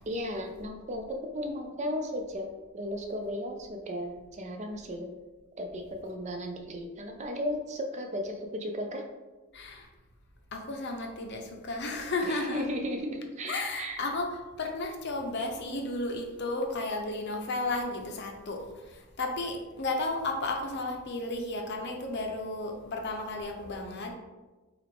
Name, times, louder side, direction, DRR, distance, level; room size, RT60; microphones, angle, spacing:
voice 1, 0.1-5.1 5.6-9.0 12.2-14.0, equal, 35° right, 4 dB, 0.4 m, -35 dB
voice 2, 9.5-9.9 10.5-12.6 13.5-24.1, left 2 dB, 55° left, 3 dB, 0.6 m, -33 dB
6.0 x 2.5 x 3.4 m, 1.2 s
head